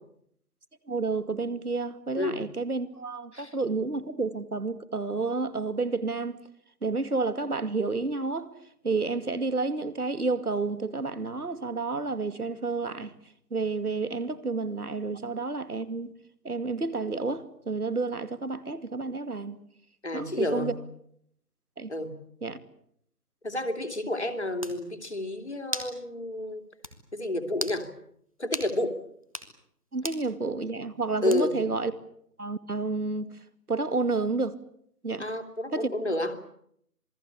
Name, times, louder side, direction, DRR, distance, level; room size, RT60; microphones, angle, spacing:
voice 1, 0.9-6.4 6.8-8.5 8.8-13.1 13.5-16.1 16.4-19.6 20.1-20.7 21.8-21.9 22.4-22.6 29.9-31.9 32.4-33.3 33.7-34.6 35.0-35.3 35.7-35.9, right 3 dB, 65° right, 2.5 m, -30 dB
voice 2, 20.0-20.8 21.9-22.2 23.4-26.6 27.1-27.9 28.4-29.0 31.2-31.6 35.2-36.3, left 1 dB, 45° left, 3.0 m, -30 dB
sound 1, 24.2-24.3 24.6-24.8 25.7-26.0 26.3-26.4 26.8-27.0 27.5-27.8 28.5-28.7 29.2-29.5 30.0-30.2 31.3-31.6, left 1 dB, 20° right, 1.6 m, -35 dB
27.0 x 21.0 x 8.4 m
figure-of-eight pair, 180°, 48 cm